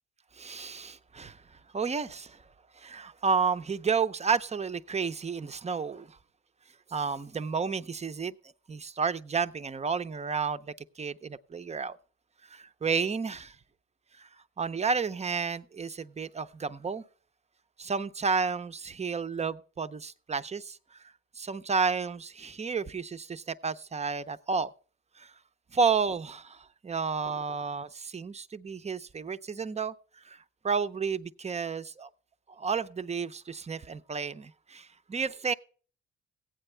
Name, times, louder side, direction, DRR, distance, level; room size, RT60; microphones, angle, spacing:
voice 1, 0.4-1.4 1.7-2.4 2.8-6.2 6.9-8.3 8.7-12.0 12.5-13.6 14.2-14.3 14.6-17.0 17.8-20.8 21.4-24.7 25.2-25.3 25.7-29.9 30.2-30.4 30.6-32.1 32.6-35.5, right 5 dB, 20° right, 0.6 m, -31 dB
15.5 x 9.0 x 3.3 m
cardioid pair, 90°, 30 cm